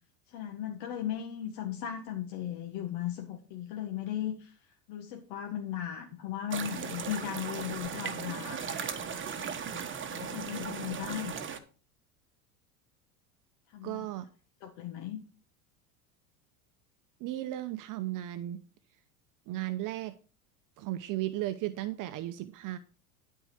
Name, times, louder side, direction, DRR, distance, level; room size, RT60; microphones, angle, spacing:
voice 1, 0.3-4.6 4.9-8.8 10.0-11.3 13.7-14.0 14.6-15.2, left 10 dB, 60° left, 1.7 m, -37 dB
sound 1, 6.5-11.6, right 6 dB, 25° right, 1.4 m, -37 dB
voice 2, 13.8-14.3 17.2-18.6 19.5-20.2 20.8-22.8, right 15 dB, 45° right, 0.8 m, -35 dB
12.0 x 4.8 x 5.8 m
hypercardioid pair, 85°, 44 cm